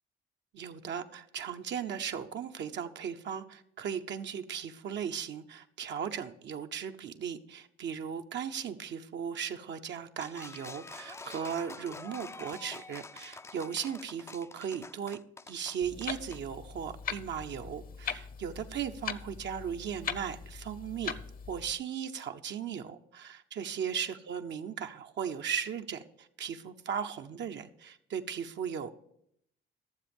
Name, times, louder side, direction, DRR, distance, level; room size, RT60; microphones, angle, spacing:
voice 1, 0.5-15.2 15.5-21.2 21.5-28.9, right 8 dB, 65° right, 0.8 m, -37 dB
sound 1, 10.2-16.4, left 3 dB, 15° left, 0.3 m, -47 dB
Clock, 15.8-21.7, left 7 dB, 45° left, 0.7 m, -41 dB
13.0 x 7.1 x 5.3 m
cardioid pair, 90°, 20 cm